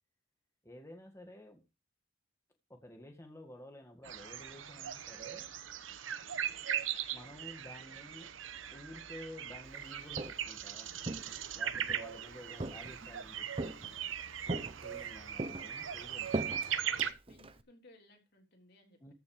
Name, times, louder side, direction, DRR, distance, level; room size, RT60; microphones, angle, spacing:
voice 1, 0.6-1.6 2.7-5.5 7.1-8.3 8.7-10.9 11.5-14.0 14.5-16.8 19.0-19.1, left 1 dB, 15° left, 3 dB, 2.0 m, -52 dB
sound 1, 4.0-17.1, right 9 dB, 80° right, 1.0 m, -39 dB
Walk footsteps, 9.9-10.6 11.0-12.0 12.6-13.2 13.6-14.1 14.5-15.1 15.4-17.6, right 2 dB, 30° right, 0.8 m, -40 dB
voice 2, 17.3-19.1, left 2 dB, 55° left, 2 dB, 3.7 m, -61 dB
14.5 x 6.7 x 4.9 m, 0.29 s
head